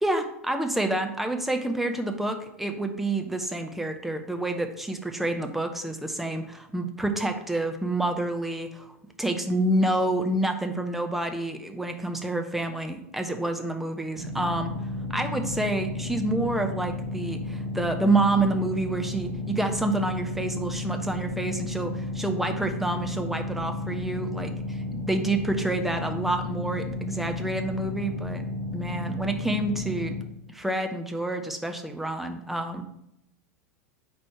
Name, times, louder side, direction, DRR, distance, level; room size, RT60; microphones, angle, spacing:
voice 1, 0.0-8.9 9.2-14.7 15.1-24.5 24.9-28.4 28.7-30.2 30.5-32.9, right 2 dB, 5° right, 5 dB, 0.7 m, -28 dB
sound 1, 14.2-30.2, left 2 dB, 30° right, 1.9 m, -33 dB
4.7 x 4.3 x 5.7 m, 0.78 s
figure-of-eight pair, 85°, 9 cm